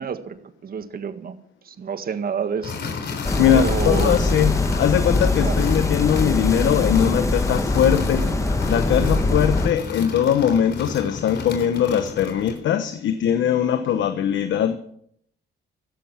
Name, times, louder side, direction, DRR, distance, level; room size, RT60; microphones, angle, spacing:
voice 1, 0.0-1.4 1.6-2.8 3.5-4.1 5.2-5.6, right 6 dB, 50° right, 1.7 m, -29 dB
sound 1, 2.6-12.7, left 4 dB, 55° left, 3.7 m, -32 dB
sound 2, 3.2-9.7, left 2 dB, 15° left, 1.2 m, -22 dB
voice 2, 3.4-8.4 8.7-14.8, left 9 dB, 75° left, 1.1 m, -21 dB
16.0 x 12.5 x 6.0 m
cardioid pair, 90°, 20 cm